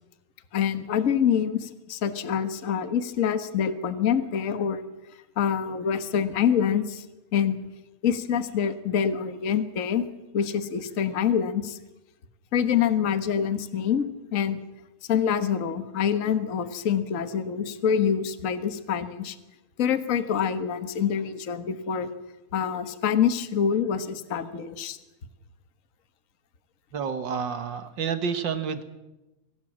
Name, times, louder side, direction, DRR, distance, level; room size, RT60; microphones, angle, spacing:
voice 1, 0.5-4.8 5.4-7.0 7.3-7.6 8.0-10.1 10.3-11.8 12.5-14.6 15.1-19.4 19.8-22.1 22.5-25.0, left 8 dB, 55° left, 10 dB, 0.9 m, -26 dB
voice 2, 26.9-28.8, right 6 dB, 50° right, 10 dB, 1.5 m, -29 dB
24.5 x 17.5 x 7.4 m, 1.0 s
omnidirectional pair, 3.4 m